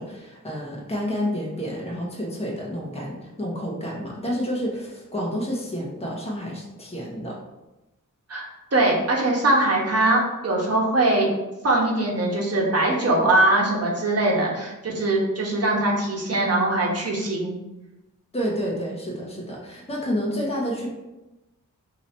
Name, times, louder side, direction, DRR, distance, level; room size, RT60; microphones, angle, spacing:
voice 1, 0.0-7.4 18.3-20.9, equal, 20° left, -3 dB, 1.0 m, -29 dB
voice 2, 8.3-11.3 11.6-17.5, right 2 dB, 50° right, -3 dB, 1.1 m, -22 dB
3.0 x 2.8 x 4.4 m, 1.0 s
cardioid pair, 60°, 32 cm